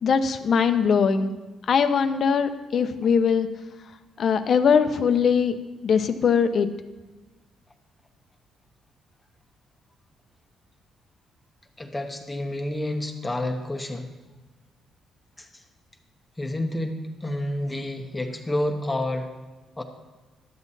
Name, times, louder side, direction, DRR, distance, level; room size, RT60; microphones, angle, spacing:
voice 1, 0.0-1.3 1.7-3.5 4.2-5.6 5.8-6.7, left 6 dB, 55° left, 9 dB, 0.7 m, -21 dB
voice 2, 11.8-14.1 15.4-15.6 16.4-19.3 19.8-19.9, left 1 dB, 15° left, 3 dB, 1.0 m, -29 dB
12.0 x 7.2 x 4.1 m, 1.2 s
cardioid pair, 90°, 0 cm